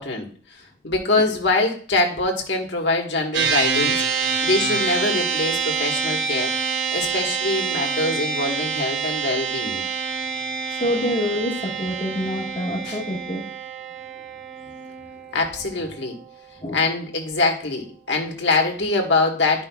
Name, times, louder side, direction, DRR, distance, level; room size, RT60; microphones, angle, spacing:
voice 1, 0.0-6.5 6.9-9.8 12.8-13.0 15.3-16.2 16.7-19.6, left 2 dB, 80° left, 1 dB, 1.5 m, -24 dB
sound 1, 3.3-16.9, right 5 dB, 85° right, 0.9 m, -27 dB
voice 2, 10.8-13.5 16.6-16.8, left 1 dB, 30° left, 0 dB, 1.5 m, -26 dB
11.5 x 5.2 x 2.3 m, 0.43 s
head